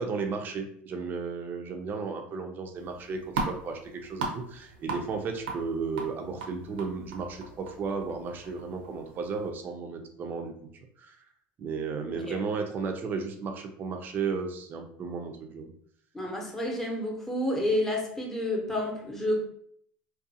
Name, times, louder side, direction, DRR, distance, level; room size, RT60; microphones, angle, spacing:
voice 1, 0.0-10.5 11.0-11.2 11.6-15.7, right 5 dB, 40° right, 4 dB, 0.5 m, -34 dB
sound 1, 2.8-9.5, right 4 dB, 90° right, 0.6 m, -39 dB
voice 2, 16.1-19.4, left 1 dB, 5° left, -1 dB, 0.8 m, -29 dB
2.5 x 2.3 x 2.6 m, 0.62 s
supercardioid pair, 100°, 5 cm